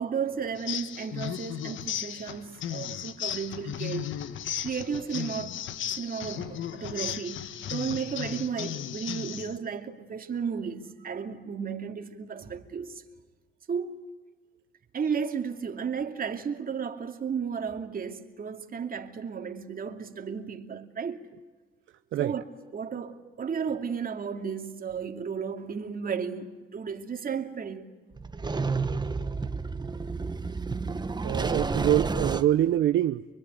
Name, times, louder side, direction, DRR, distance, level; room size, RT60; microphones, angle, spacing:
voice 1, 0.0-4.2 4.6-5.6 5.9-13.0 13.7-14.1 14.9-21.2 22.2-22.4 22.7-27.9, right 6 dB, 45° right, 2.6 m, -34 dB
sound 1, 0.6-9.6, left 10 dB, 75° left, 1.3 m, -35 dB
sound 2, 28.1-32.4, right 4 dB, 20° right, 1.4 m, -30 dB
voice 2, 31.2-33.3, right 12 dB, 75° right, 0.8 m, -25 dB
25.5 x 23.5 x 9.2 m
cardioid pair, 90°, 20 cm